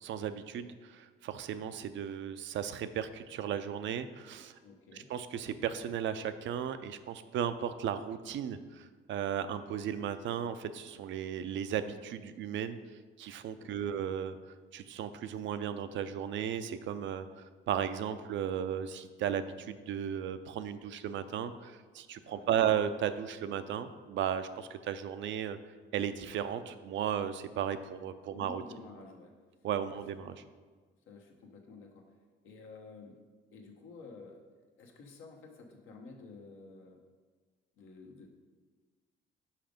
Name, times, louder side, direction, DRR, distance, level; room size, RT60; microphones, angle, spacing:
voice 1, 0.0-4.5 4.9-12.8 13.2-14.4 14.7-25.6 25.9-28.6 29.6-30.4, right 9 dB, 70° right, 11 dB, 0.5 m, -35 dB
voice 2, 4.6-5.1 13.6-14.0 22.3-22.7 28.3-29.3 29.9-30.3 31.1-32.1 32.4-33.2 33.5-34.4 34.8-37.0 37.8-38.3, left 3 dB, 85° left, 1 dB, 1.1 m, -51 dB
5.6 x 5.2 x 5.1 m, 1.4 s
cardioid pair, 90°, 20 cm